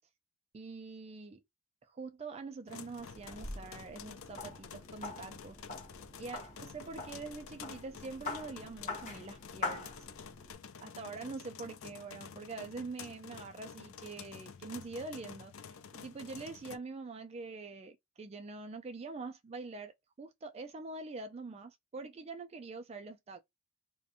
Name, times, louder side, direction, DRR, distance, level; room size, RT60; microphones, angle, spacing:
voice 1, 0.5-1.4 1.8-5.6 6.2-10.0 10.8-19.9 20.2-23.4, right 3 dB, 30° right, 0.3 m, -45 dB
sound 1, 2.7-16.8, left 7 dB, 75° left, 0.4 m, -50 dB
sound 2, 3.0-10.5, left 3 dB, 35° left, 0.9 m, -44 dB
2.5 x 2.2 x 2.7 m
head